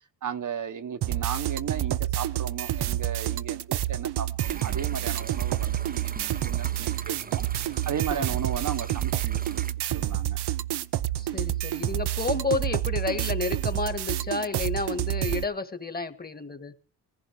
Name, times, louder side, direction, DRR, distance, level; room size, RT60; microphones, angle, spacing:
voice 1, 0.2-9.6 9.9-10.4, right 7 dB, 50° right, 8 dB, 1.1 m, -35 dB
sound 1, 1.0-15.4, right 13 dB, 75° right, 0.8 m, -29 dB
sound 2, 4.4-9.7, right 5 dB, 20° right, 0.7 m, -43 dB
voice 2, 11.2-16.7, left 4 dB, 25° left, 11 dB, 1.7 m, -31 dB
18.5 x 15.5 x 4.7 m, 0.37 s
cardioid pair, 90°, 40 cm